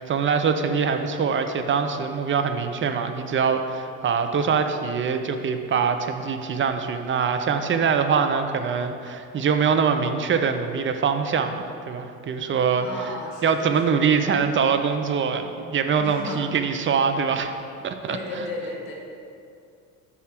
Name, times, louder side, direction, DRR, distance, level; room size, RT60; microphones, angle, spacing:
voice 1, 0.0-12.9 13.4-17.5 17.8-18.5, right 6 dB, 30° right, 7 dB, 0.6 m, -23 dB
voice 2, 12.8-14.0 16.0-16.4 18.1-18.9, left 2 dB, 55° left, -2 dB, 1.8 m, -34 dB
5.6 x 4.9 x 5.8 m, 2.5 s
hypercardioid pair, 60°, 41 cm